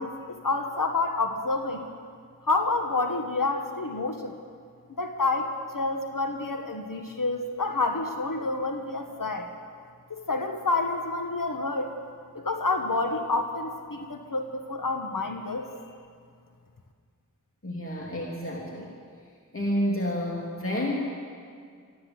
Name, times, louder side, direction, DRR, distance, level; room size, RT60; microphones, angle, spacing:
voice 1, 0.0-1.9 2.5-4.3 5.0-9.5 10.1-11.9 12.3-15.7, left 3 dB, 75° left, 4 dB, 1.5 m, -28 dB
voice 2, 17.6-18.9 19.5-21.0, equal, 40° left, -3 dB, 3.0 m, -29 dB
22.5 x 14.5 x 8.0 m, 2.1 s
wide cardioid pair, 55°, 33 cm